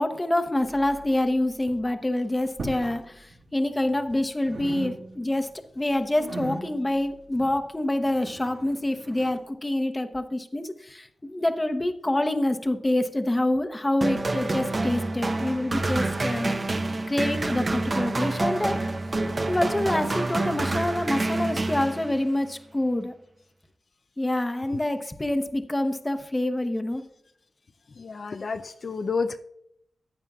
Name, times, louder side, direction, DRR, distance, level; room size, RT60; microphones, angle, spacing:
voice 1, 0.0-16.6 17.1-18.9 19.5-23.1 24.2-27.0, left 1 dB, 15° left, 7 dB, 0.9 m, -26 dB
sound 1, 0.6-1.3 1.6-1.9 2.5-3.0 3.3-4.2 4.4-5.4 5.7-9.4, right 2 dB, 75° right, 4.0 m, -39 dB
sound 2, 14.0-22.4, right 2 dB, 35° right, 0.8 m, -27 dB
voice 2, 28.0-29.4, left 4 dB, 55° left, 7 dB, 0.5 m, -30 dB
14.5 x 9.7 x 2.4 m, 0.71 s
wide cardioid pair, 95°, 0 cm